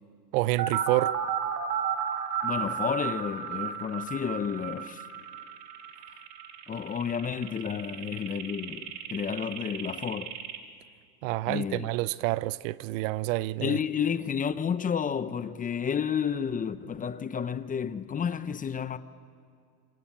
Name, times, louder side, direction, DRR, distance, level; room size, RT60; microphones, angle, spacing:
voice 1, 0.3-1.2 11.2-13.8, right 18 dB, 55° right, 0.7 m, -28 dB
sound 1, 0.6-10.6, right 8 dB, 75° right, 3.5 m, -33 dB
voice 2, 2.4-5.0 6.7-10.3 11.5-11.9 13.6-19.0, left 7 dB, 15° left, 0.8 m, -31 dB
27.0 x 25.5 x 8.7 m
supercardioid pair, 125°, 48 cm